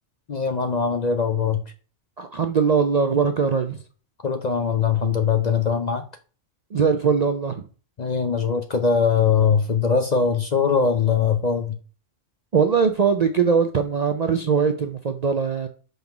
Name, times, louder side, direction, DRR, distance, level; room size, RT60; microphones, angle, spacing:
voice 1, 0.3-1.6 4.2-6.0 8.0-11.8, left 6 dB, 45° left, 0.6 m, -21 dB
voice 2, 2.2-3.8 6.7-7.6 12.5-15.7, right 6 dB, 50° right, 0.5 m, -21 dB
5.4 x 3.9 x 5.8 m
omnidirectional pair, 1.3 m